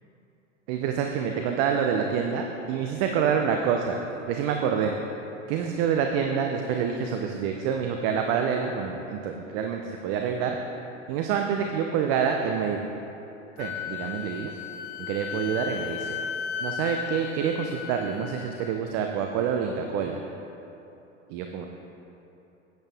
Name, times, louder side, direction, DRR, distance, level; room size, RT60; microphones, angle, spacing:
voice 1, 0.7-4.0 4.3-4.9 5.5-10.6 11.1-12.8 13.6-14.5 15.0-16.2 16.6-20.2 21.3-21.7, right 7 dB, 40° right, 3 dB, 0.7 m, -27 dB
Wind instrument woodwind instrument, 13.6-18.7, left 7 dB, 40° left, 0.6 m, -35 dB
10.5 x 9.1 x 3.6 m, 2.9 s
figure-of-eight pair, 90°, 38 cm